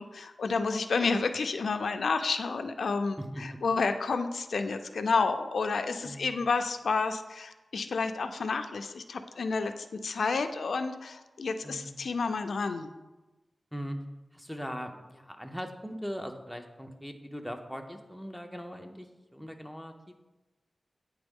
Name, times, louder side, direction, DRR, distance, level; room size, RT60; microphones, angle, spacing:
voice 1, 0.0-12.9, left 4 dB, 80° left, 8 dB, 0.3 m, -30 dB
voice 2, 3.2-3.6 6.0-6.4 11.6-12.1 13.7-14.0 14.3-20.1, equal, ahead, 5 dB, 0.5 m, -40 dB
8.9 x 3.4 x 3.5 m, 1.1 s
wide cardioid pair, 125°, 0 cm